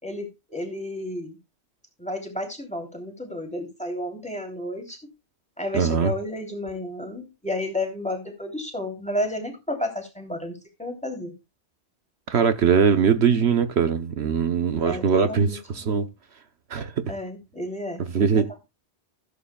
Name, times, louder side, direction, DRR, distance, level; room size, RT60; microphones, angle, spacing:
voice 1, 0.0-1.4 2.0-5.0 5.6-11.3 14.8-16.0 17.1-18.0 18.3-18.6, left 1 dB, 5° left, 3.1 m, -32 dB
voice 2, 5.7-6.1 12.3-16.1 16.7-17.0 18.1-18.5, right 6 dB, 70° right, 1.1 m, -21 dB
16.0 x 8.3 x 2.3 m
omnidirectional pair, 1.2 m